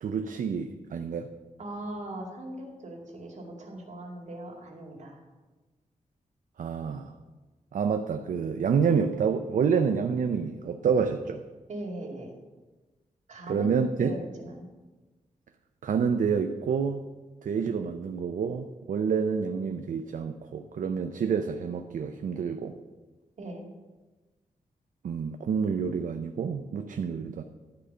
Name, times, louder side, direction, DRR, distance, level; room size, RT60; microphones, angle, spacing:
voice 1, 0.0-1.3 6.6-7.1 7.7-11.4 13.5-14.1 15.8-17.0 17.4-22.7 25.0-27.4, right 6 dB, 75° right, 6 dB, 0.6 m, -28 dB
voice 2, 1.6-5.2 11.7-12.3 13.3-14.7 23.4-23.6, right 1 dB, 60° right, 0 dB, 2.3 m, -39 dB
11.5 x 5.0 x 6.7 m, 1.2 s
wide cardioid pair, 110°, 14 cm